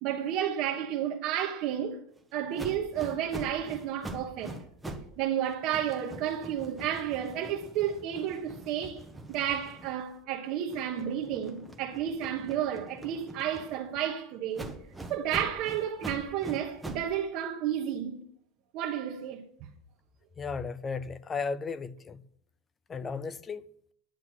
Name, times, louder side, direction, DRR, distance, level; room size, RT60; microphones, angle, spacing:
voice 1, 0.0-2.0 2.3-4.6 5.2-9.0 9.3-14.7 15.1-18.2 18.7-19.7, right 10 dB, 45° right, 1.2 m, -32 dB
sound 1, 2.6-5.2 5.5-10.2 10.7-14.0 14.5-17.1, right 1 dB, 5° right, 1.0 m, -44 dB
voice 2, 20.4-22.2 22.9-23.6, left 5 dB, 15° left, 0.6 m, -35 dB
10.5 x 10.0 x 6.1 m
supercardioid pair, 170°, 0 cm